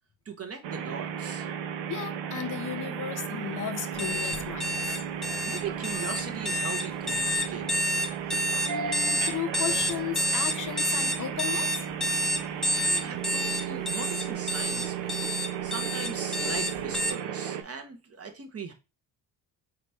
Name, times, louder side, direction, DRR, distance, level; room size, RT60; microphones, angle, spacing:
voice 1, 0.2-1.5 5.4-7.8 12.8-15.3 15.6-18.7, right 5 dB, 35° right, 0.9 m, -39 dB
sound 1, 0.6-17.6, right 8 dB, 80° right, 0.8 m, -34 dB
voice 2, 1.9-5.0 8.3-11.8, left 9 dB, 45° left, 0.6 m, -35 dB
sound 2, 4.0-17.1, equal, ahead, 0.5 m, -29 dB
4.1 x 3.0 x 3.3 m
cardioid pair, 110°, 43 cm